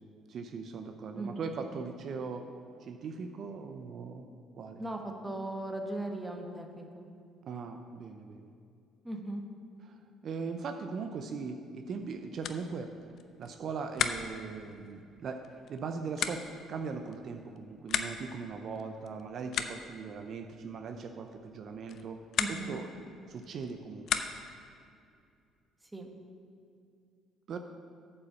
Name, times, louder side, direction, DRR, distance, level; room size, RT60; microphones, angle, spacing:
voice 1, 0.3-2.4 2.8-4.3 4.6-4.8 7.5-8.5 9.8-12.9 13.4-15.4 15.7-16.4 16.7-22.2 22.5-22.9 23.3-24.2 27.5-27.6, right 5 dB, 55° right, 6 dB, 0.5 m, -39 dB
voice 2, 1.1-1.5 4.8-7.1 9.0-9.4 22.4-22.8 25.9-26.1, right 1 dB, 10° right, 3 dB, 1.2 m, -38 dB
sound 1, 11.9-24.7, left 7 dB, 60° left, 0.5 m, -39 dB
8.2 x 5.5 x 7.0 m, 2.4 s
supercardioid pair, 75°, 0 cm